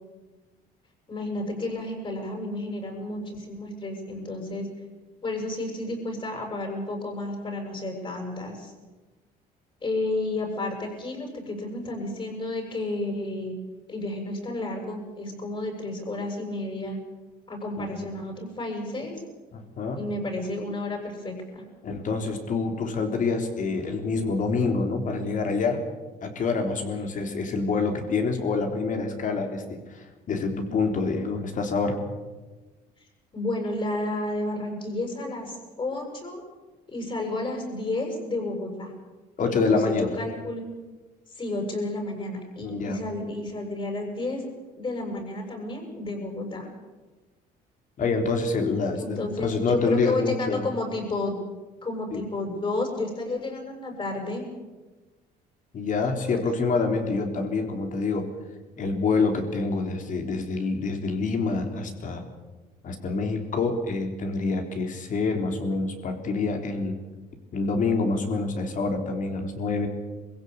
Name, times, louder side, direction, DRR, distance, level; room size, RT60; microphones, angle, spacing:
voice 1, 1.1-4.7 5.2-8.7 9.8-13.5 13.9-17.0 17.5-19.2 20.0-21.6 33.3-36.4 36.9-38.9 39.5-40.6 41.3-44.5 44.8-46.7 49.0-51.4 51.8-54.4, left 2 dB, 30° left, 3 dB, 7.3 m, -31 dB
voice 2, 19.5-20.0 21.8-25.8 26.2-32.0 39.4-40.2 42.6-43.0 48.0-50.6 52.1-52.2 55.7-58.3 58.8-62.2 62.8-67.0 67.5-69.9, left 4 dB, 50° left, 5 dB, 3.7 m, -26 dB
23.0 x 16.0 x 8.4 m, 1.2 s
cardioid pair, 110°, 17 cm